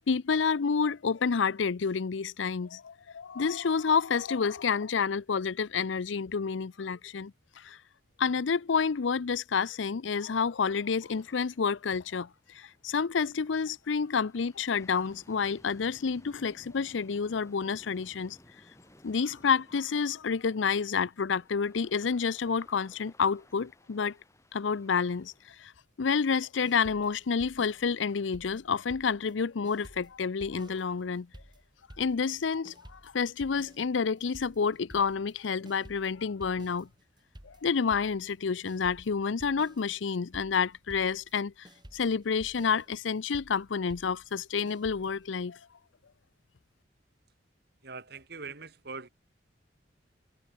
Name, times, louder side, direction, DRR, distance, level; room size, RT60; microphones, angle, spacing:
voice 1, 0.0-7.8 8.2-12.3 12.5-18.4 19.0-24.2 24.5-25.7 26.0-31.3 32.0-36.9 37.4-45.6, left 5 dB, 90° left, 0.6 m, -29 dB
sound 1, 11.0-25.5, left 1 dB, 15° left, 3.9 m, -60 dB
sound 2, 26.6-29.4 29.6-45.3, equal, 25° right, 3.5 m, -53 dB
voice 2, 47.8-49.1, right 4 dB, 60° right, 2.7 m, -42 dB
head